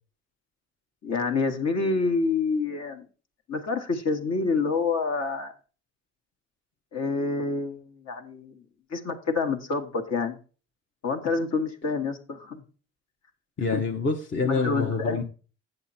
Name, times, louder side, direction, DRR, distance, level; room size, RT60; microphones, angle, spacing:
voice 1, 1.0-3.1 3.5-5.5 6.9-8.6 8.9-10.4 11.0-12.6 13.7-13.8 14.4-15.2, left 4 dB, 60° left, 1.6 m, -27 dB
voice 2, 13.6-15.2, left 4 dB, 40° left, 1.0 m, -26 dB
8.2 x 6.8 x 4.3 m
cardioid pair, 90°, 30 cm